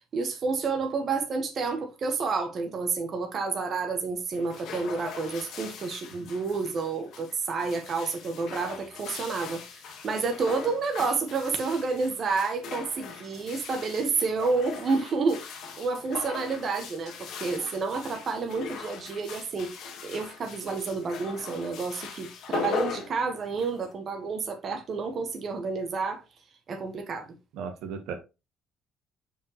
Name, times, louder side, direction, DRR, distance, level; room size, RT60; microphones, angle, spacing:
voice 1, 0.1-15.4 15.8-19.7 20.0-26.2 26.7-27.3, right 4 dB, 40° right, 1.3 m, -30 dB
sound 1, 4.3-23.9, left 6 dB, 65° left, 1.6 m, -40 dB
voice 2, 27.5-28.2, right 6 dB, 90° right, 1.4 m, -35 dB
6.0 x 5.4 x 3.0 m
cardioid pair, 150°, 0 cm